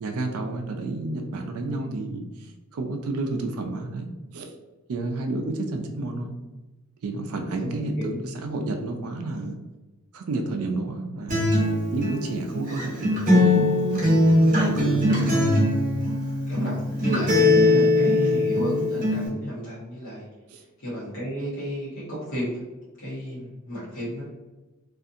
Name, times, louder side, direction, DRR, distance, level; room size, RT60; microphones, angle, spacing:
voice 1, 0.0-4.5 4.9-6.3 7.0-9.6 10.1-11.4 11.9-13.6 14.6-15.6 20.5-20.6, right 2 dB, 70° right, 4 dB, 0.4 m, -30 dB
voice 2, 6.0-6.3 7.6-8.4 16.5-20.3 20.8-22.6 23.0-24.2, equal, 60° left, -10 dB, 0.9 m, -33 dB
Acoustic guitar, 11.3-19.3, left 1 dB, 35° right, 0.7 m, -21 dB
2.6 x 2.4 x 2.5 m, 1.1 s
head